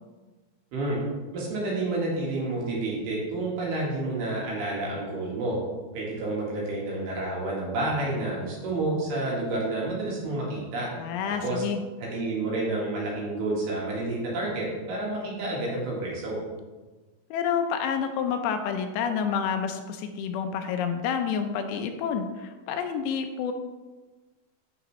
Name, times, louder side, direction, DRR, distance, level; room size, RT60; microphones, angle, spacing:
voice 1, 1.3-5.6 5.9-10.9 11.2-11.6 12.1-16.4, right 2 dB, 65° right, -4 dB, 3.5 m, -29 dB
voice 2, 11.0-11.8 17.3-23.5, left 7 dB, 80° left, 6 dB, 2.7 m, -29 dB
8.8 x 6.8 x 3.1 m, 1.2 s
omnidirectional pair, 5.1 m